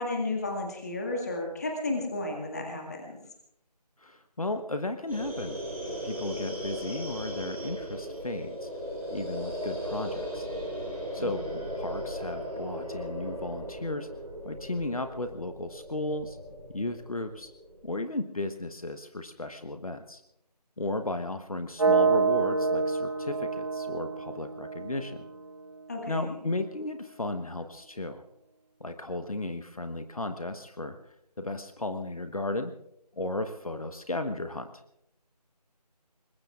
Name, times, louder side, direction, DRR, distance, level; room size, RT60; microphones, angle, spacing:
voice 1, 0.0-3.2 11.2-11.5 25.9-26.4, left 2 dB, 25° left, 1 dB, 2.0 m, -33 dB
voice 2, 4.0-5.6 6.0-8.7 9.1-10.5 11.1-11.4 11.7-14.1 14.4-16.4 16.7-17.5 17.8-20.2 20.8-25.3 26.1-28.2 28.8-31.0 31.4-32.7 33.2-34.8, left 2 dB, 55° left, 8 dB, 1.1 m, -34 dB
sound 1, 5.1-17.8, equal, ahead, 0.8 m, -37 dB
sound 2, 21.8-25.7, right 4 dB, 45° right, 1.3 m, -27 dB
27.0 x 21.5 x 2.5 m, 0.80 s
figure-of-eight pair, 165°, 21 cm